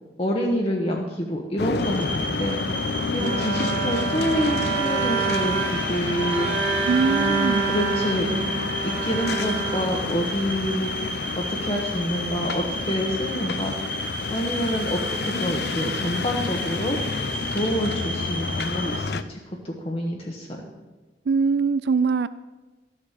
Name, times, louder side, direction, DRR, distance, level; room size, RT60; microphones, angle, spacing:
voice 1, 0.2-6.7 7.2-7.3 7.7-8.3 8.8-13.7 14.3-19.4 19.6-20.7, equal, 30° left, 0 dB, 1.1 m, -27 dB
sound 1, 1.6-19.2, left 4 dB, 65° left, 0.5 m, -30 dB
sound 2, 1.8-19.0, right 1 dB, 10° left, 1.4 m, -33 dB
Bowed string instrument, 3.2-10.6, right 5 dB, 40° right, 1.6 m, -27 dB
voice 2, 6.9-7.7 21.3-22.3, right 5 dB, 70° right, 16 dB, 0.4 m, -22 dB
13.0 x 7.7 x 6.5 m, 1.3 s
head